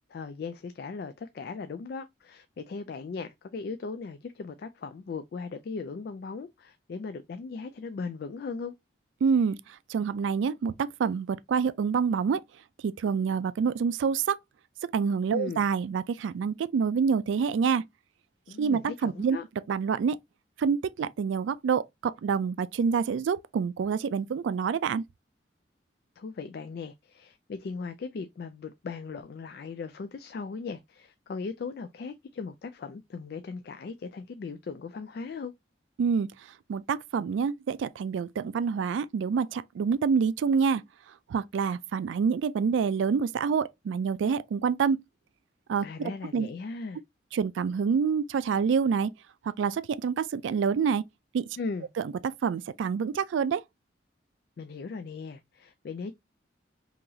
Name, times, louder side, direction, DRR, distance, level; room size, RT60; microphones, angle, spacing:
voice 1, 0.1-8.7 15.3-15.6 18.5-19.4 26.2-35.5 45.8-47.0 51.6-51.9 54.6-56.1, left 4 dB, 55° left, 0.3 m, -38 dB
voice 2, 9.2-12.4 12.8-14.4 14.8-17.8 18.6-19.4 19.7-20.2 20.6-25.0 36.0-36.3 36.7-40.8 41.3-45.0 45.7-46.5 47.3-49.1 49.4-51.1 51.3-51.5 52.2-53.6, right 6 dB, 90° right, 0.3 m, -27 dB
3.8 x 2.9 x 2.7 m
head